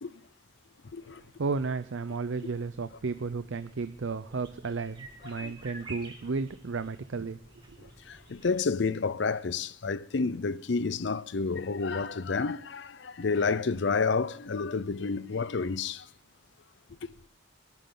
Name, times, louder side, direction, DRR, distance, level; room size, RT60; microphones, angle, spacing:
voice 1, 1.4-7.4 7.7-7.9, right 4 dB, 70° right, 0.5 m, -33 dB
sound 1, 2.2-8.6, right 2 dB, 20° right, 1.9 m, -50 dB
voice 2, 8.1-16.1, left 4 dB, 60° left, 0.5 m, -30 dB
25.0 x 10.5 x 3.8 m
head